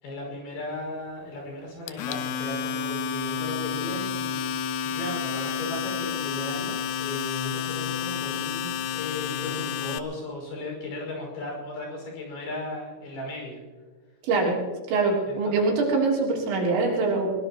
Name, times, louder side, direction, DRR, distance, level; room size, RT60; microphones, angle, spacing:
voice 1, 0.0-13.6 15.3-15.6, left 1 dB, 60° left, 0 dB, 7.6 m, -36 dB
Domestic sounds home sounds, 1.9-10.0, left 7 dB, 80° left, 2.4 m, -30 dB
voice 2, 14.2-14.6 14.9-17.3, right 3 dB, 75° right, -2 dB, 5.6 m, -23 dB
22.0 x 21.0 x 3.0 m, 1.4 s
omnidirectional pair, 5.2 m